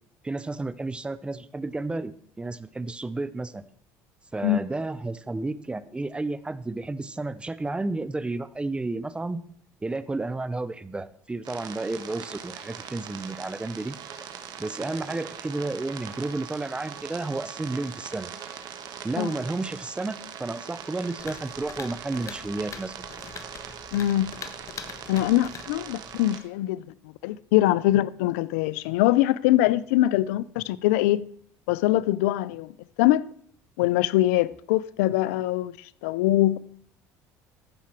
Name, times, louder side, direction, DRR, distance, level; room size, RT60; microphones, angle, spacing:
voice 1, 0.2-3.6 4.3-9.4 9.8-14.0 14.6-18.3 19.0-23.1, right 2 dB, 15° right, 0.6 m, -32 dB
sound 1, 11.4-26.4, right 8 dB, 60° right, 1.3 m, -41 dB
sound 2, 21.2-26.4, left 6 dB, 45° left, 1.1 m, -43 dB
voice 2, 23.9-24.3 25.1-26.8 27.2-31.3 31.7-32.7 33.0-33.3 33.8-35.7 36.0-36.6, left 15 dB, 85° left, 0.4 m, -23 dB
14.5 x 5.8 x 4.5 m
supercardioid pair, 85°, 8 cm